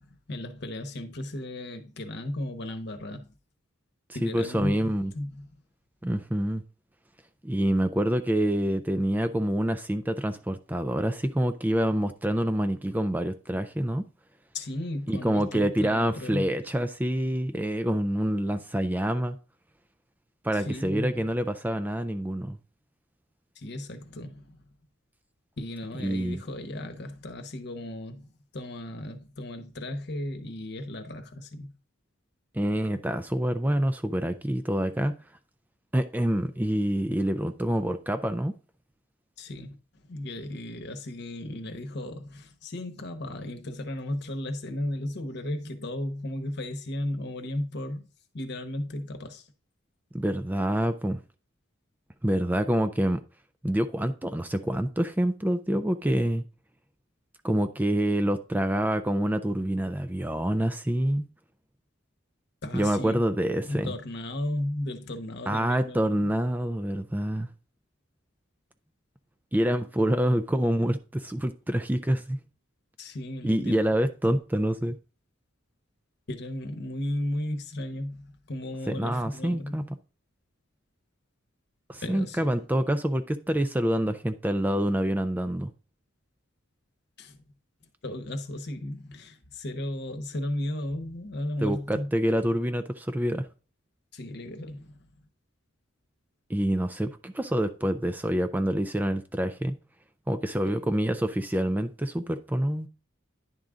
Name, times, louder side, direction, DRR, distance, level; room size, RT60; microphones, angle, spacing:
voice 1, 0.0-3.3 4.1-5.5 14.5-16.6 20.5-21.2 23.6-24.6 25.6-28.2 28.5-31.7 39.4-39.8 40.0-48.0 48.3-49.4 62.6-63.2 63.6-66.0 73.0-73.8 76.3-79.8 82.0-82.6 87.2-87.4 88.0-92.1 94.1-95.0 100.6-100.7, left 1 dB, 55° left, 1.0 m, -35 dB
voice 2, 4.2-5.1 6.0-6.6 7.4-14.0 15.1-19.4 20.4-22.6 26.0-26.4 32.5-35.1 35.9-38.5 50.1-51.2 52.2-53.2 53.6-56.4 57.4-61.2 62.7-63.9 65.5-67.5 69.5-72.4 73.4-75.0 78.9-79.8 81.9-85.7 91.6-93.5 96.5-99.7 100.3-102.9, right 1 dB, 10° right, 0.4 m, -26 dB
10.5 x 3.7 x 3.7 m
head